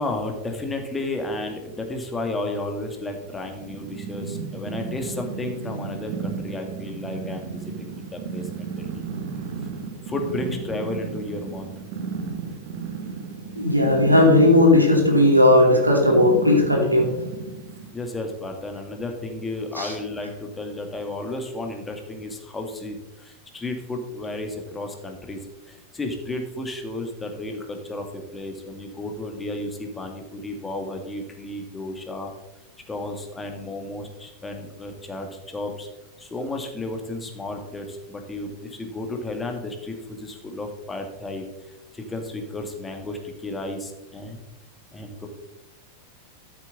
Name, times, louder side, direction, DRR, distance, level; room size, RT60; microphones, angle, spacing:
voice 1, 0.0-9.0 9.6-9.7 10.1-11.7 17.9-25.4 25.7-32.3 32.9-35.9 36.2-41.5 41.9-44.4 44.9-45.3, left 2 dB, 15° left, 3 dB, 2.0 m, -33 dB
Purr, 3.1-17.9, right 5 dB, 50° right, 2.0 m, -34 dB
voice 2, 13.6-17.1 19.8-19.9, left 1 dB, 85° right, 0 dB, 2.6 m, -16 dB
13.5 x 7.7 x 4.0 m, 1.0 s
figure-of-eight pair, 90°, 0 cm